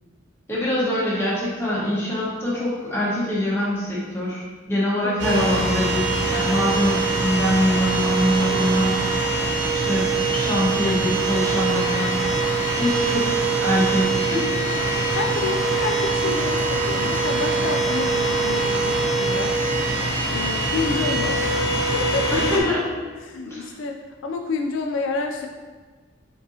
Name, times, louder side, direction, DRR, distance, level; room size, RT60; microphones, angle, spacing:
voice 1, 0.5-9.0 9.7-12.4 12.8-14.9 22.3-23.0 23.4-23.7, left 1 dB, 15° left, -8 dB, 1.2 m, -24 dB
voice 2, 5.0-5.7 8.5-8.7 15.1-19.6 20.3-22.4 23.2-25.5, left 3 dB, 70° left, 4 dB, 0.3 m, -29 dB
sound 1, 5.2-22.6, right 3 dB, 65° right, 0.8 m, -23 dB
4.6 x 3.7 x 2.7 m, 1.4 s
head